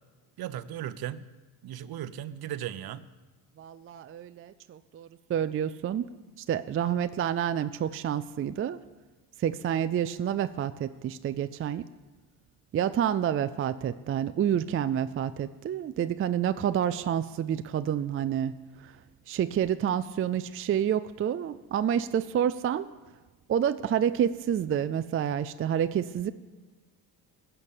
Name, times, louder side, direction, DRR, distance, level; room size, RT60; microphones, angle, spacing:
voice 1, 0.4-1.3 1.6-3.1, right 11 dB, 55° right, 14 dB, 0.8 m, -36 dB
voice 2, 3.6-6.1 6.4-8.8 9.4-11.8 12.7-18.5 18.8-18.9 19.3-22.9 23.5-26.3, right 9 dB, 30° right, 12 dB, 0.4 m, -28 dB
15.5 x 6.9 x 8.1 m, 1.2 s
supercardioid pair, 90°, 44 cm